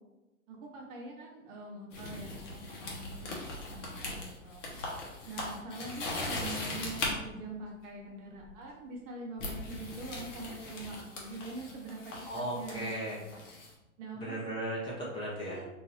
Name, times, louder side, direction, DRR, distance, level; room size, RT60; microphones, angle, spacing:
voice 1, 0.5-3.3 3.7-4.6 5.3-12.1 12.5-13.5 14.0-14.4 15.4-15.7, right 2 dB, 30° right, -1 dB, 0.6 m, -44 dB
sound 1, 1.9-7.1 8.4-8.6 9.4-13.7, left 2 dB, 60° left, 1.1 m, -40 dB
voice 2, 12.3-13.2 14.1-15.6, right 1 dB, 15° left, -6 dB, 0.6 m, -36 dB
2.7 x 2.6 x 3.1 m, 1.0 s
hypercardioid pair, 115°, 42 cm